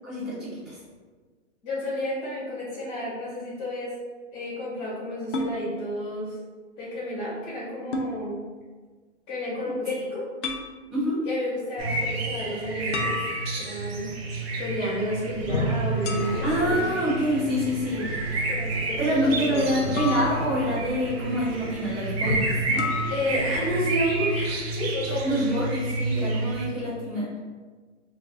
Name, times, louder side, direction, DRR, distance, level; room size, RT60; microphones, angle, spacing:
voice 1, 0.0-0.8 10.9-11.2 16.4-18.0 19.0-22.9 25.2-27.3, equal, 5° right, -16 dB, 0.3 m, -26 dB
voice 2, 1.6-3.9 4.3-6.4 6.8-8.4 9.3-10.2 11.2-13.2 13.5-14.1 14.6-16.5 18.5-19.6 23.1-25.6, left 1 dB, 30° left, -7 dB, 1.2 m, -31 dB
sound 1, 5.3-5.6 7.9-8.1 10.4-10.7 12.9-13.8 16.0-16.7 20.0-20.9 22.8-23.2, left 4 dB, 65° left, 0.6 m, -31 dB
sound 2, 11.8-26.7, right 3 dB, 55° right, 0.7 m, -30 dB
Toilet flush, 15.3-24.4, left 1 dB, 40° right, 1.5 m, -34 dB
3.7 x 2.6 x 2.2 m, 1.4 s
hypercardioid pair, 155°, 37 cm